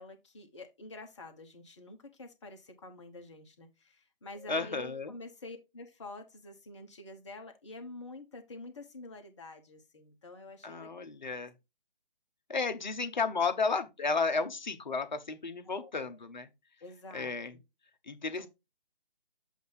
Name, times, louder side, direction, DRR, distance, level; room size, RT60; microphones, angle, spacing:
voice 1, 0.0-10.9 15.6-16.2 16.8-17.3 18.4-18.5, left 2 dB, 30° left, 1.1 m, -48 dB
voice 2, 4.5-5.1 10.6-11.5 12.5-16.5 17.1-17.5 18.0-18.5, left 4 dB, 50° left, 0.9 m, -33 dB
7.7 x 2.6 x 5.2 m
figure-of-eight pair, 145°, 29 cm